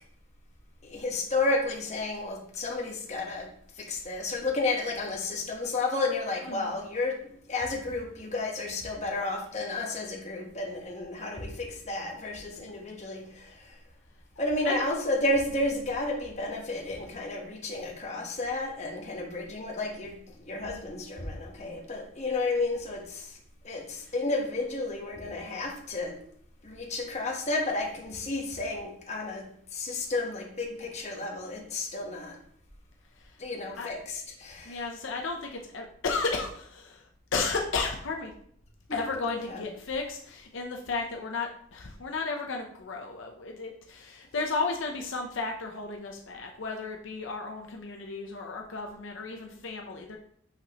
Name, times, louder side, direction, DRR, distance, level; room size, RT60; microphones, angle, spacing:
voice 1, 0.8-3.5 3.8-7.2 7.5-13.8 14.4-23.4 23.6-26.2 26.6-32.4 33.4-34.8 39.3-39.7, left 2 dB, 35° left, 1.1 m, -32 dB
voice 2, 34.6-38.3 38.9-50.2, left 4 dB, 70° left, 0.7 m, -34 dB
5.9 x 5.6 x 2.9 m
head